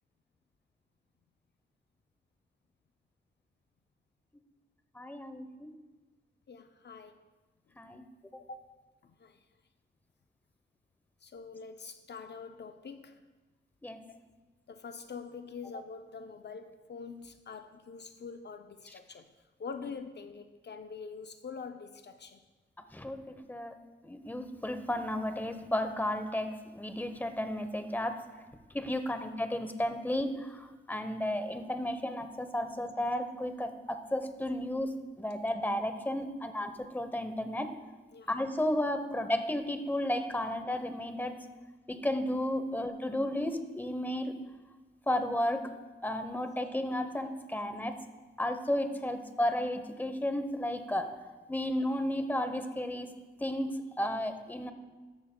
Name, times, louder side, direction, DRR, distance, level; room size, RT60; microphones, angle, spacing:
voice 1, 4.9-5.7 7.8-8.1 13.8-14.0 22.9-23.7 24.0-28.2 28.7-37.7 38.3-41.4 41.9-44.3 45.1-45.6 46.0-48.0 48.4-51.1 51.5-53.1 53.4-54.7, left 1 dB, 10° left, 8 dB, 0.8 m, -33 dB
voice 2, 6.5-7.1 8.5-8.6 9.0-9.4 11.2-13.2 14.1-14.2 14.7-19.3 19.6-22.4 32.7-32.8 38.1-38.3 42.7-42.8, left 5 dB, 60° left, 8 dB, 0.5 m, -45 dB
13.5 x 11.0 x 2.2 m, 1.3 s
wide cardioid pair, 105°, 20 cm